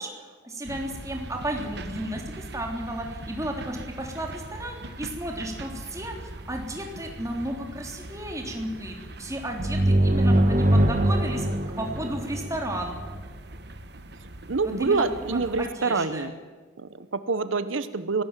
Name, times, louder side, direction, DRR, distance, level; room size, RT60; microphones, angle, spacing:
voice 1, 0.0-11.5 11.8-12.9 14.8-15.0 15.3-16.3, right 1 dB, 15° right, 2 dB, 3.3 m, -33 dB
sound 1, 0.6-15.7, right 1 dB, 55° right, 1.3 m, -41 dB
sound 2, 9.6-13.2, right 1 dB, 40° right, 1.6 m, -22 dB
voice 2, 14.5-16.3 16.8-18.2, right 4 dB, 85° right, 13 dB, 0.9 m, -26 dB
24.0 x 17.0 x 7.4 m, 1.4 s
head